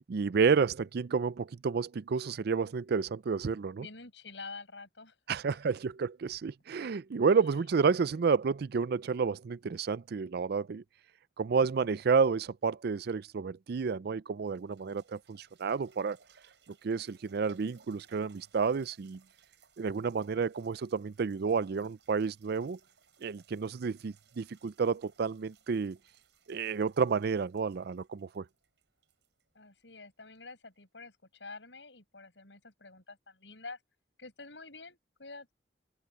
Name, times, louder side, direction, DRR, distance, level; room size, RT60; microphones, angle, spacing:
voice 1, 0.1-3.9 5.3-10.8 11.4-16.2 16.8-19.2 19.8-22.8 23.2-26.0 26.5-28.5, right 5 dB, 60° right, 0.4 m, -30 dB
voice 2, 3.8-5.4 8.1-8.3 29.5-33.8 34.2-35.5, left 3 dB, 85° left, 7.4 m, -48 dB
sound 1, 14.4-30.1 30.7-30.8, right 7 dB, 75° right, 6.0 m, -66 dB
head